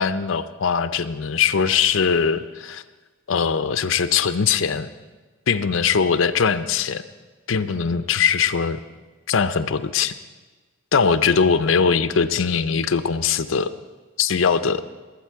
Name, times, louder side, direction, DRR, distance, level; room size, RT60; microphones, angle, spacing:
voice 1, 0.0-2.8 3.3-4.9 5.5-7.0 7.5-8.8 9.3-10.1 10.9-13.7 14.2-14.8, left 6 dB, 75° left, 11 dB, 0.6 m, -21 dB
21.0 x 8.3 x 4.6 m, 1.3 s
head